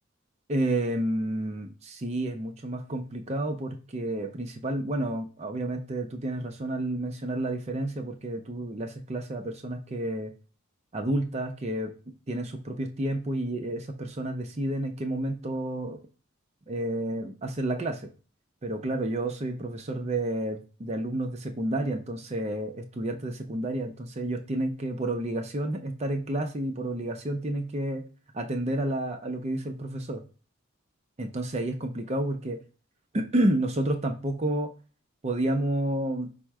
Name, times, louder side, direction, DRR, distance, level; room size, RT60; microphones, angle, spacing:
voice 1, 0.5-10.3 10.9-11.9 12.3-16.0 16.7-18.1 18.6-28.0 28.3-30.2 31.2-32.6 33.1-34.7 35.2-36.3, right 1 dB, 30° right, 4 dB, 0.5 m, -30 dB
4.5 x 2.0 x 4.6 m, 0.36 s
head